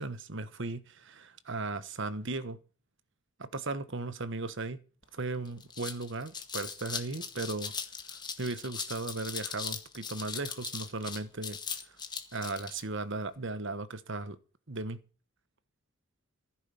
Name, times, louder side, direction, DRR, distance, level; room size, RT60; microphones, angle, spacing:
voice 1, 0.0-2.6 3.4-4.8 5.1-7.7 8.1-11.6 12.3-14.4 14.7-15.0, right 3 dB, 60° right, 1.2 m, -36 dB
sound 1, 5.0-5.1 5.4-12.8, left 6 dB, 20° left, 1.7 m, -39 dB
15.0 x 9.2 x 7.1 m
head